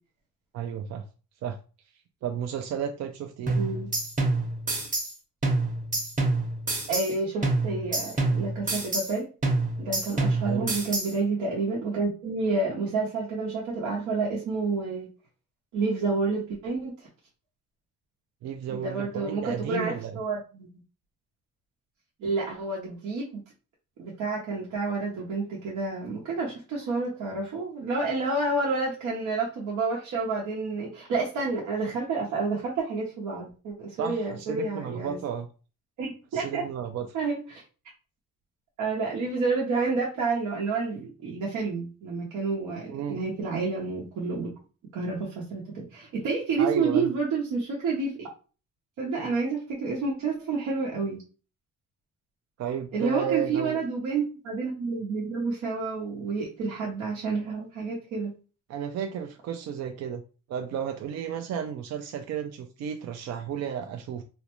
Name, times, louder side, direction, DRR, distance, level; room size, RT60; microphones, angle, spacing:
voice 1, 0.5-1.0 1.4-1.6 2.2-3.6 10.4-10.7 18.4-20.2 34.0-35.5 36.3-37.1 42.9-43.2 46.6-47.1 52.6-53.8 58.7-60.2 60.5-64.2, right 8 dB, 60° right, 0.4 m, -33 dB
sound 1, 3.5-5.1 5.4-7.1 7.4-9.1 9.4-11.1, right 2 dB, 25° right, 0.8 m, -27 dB
voice 2, 3.5-3.9 6.9-9.3 9.8-15.1 15.7-16.9 18.7-20.7 22.2-23.3 24.0-35.2 36.0-36.6 37.1-37.6 38.8-44.5 44.9-48.3 49.0-51.2 52.9-58.3, right 4 dB, 85° right, 0.8 m, -29 dB
2.5 x 2.1 x 2.9 m
cardioid pair, 90°, 30 cm